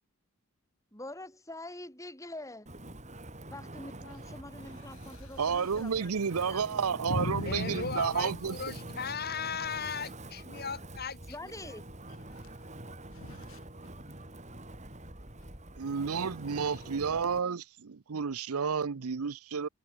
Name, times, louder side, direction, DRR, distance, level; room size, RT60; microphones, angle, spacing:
voice 1, 0.9-2.7 3.5-6.6 11.3-11.8, left 1 dB, 15° left, 7.3 m, -45 dB
Wind, 2.7-17.4, right 1 dB, 30° right, 5.2 m, -46 dB
voice 2, 4.8-5.6 6.4-6.5 7.1-8.4 8.9-9.0 12.3-12.8 13.1-13.7 16.6-16.9, left 1 dB, 70° left, 1.8 m, -40 dB
voice 3, 5.4-8.7 15.8-19.7, right 6 dB, 90° right, 0.7 m, -31 dB
voice 4, 7.5-11.2, left 5 dB, 45° left, 3.0 m, -37 dB
head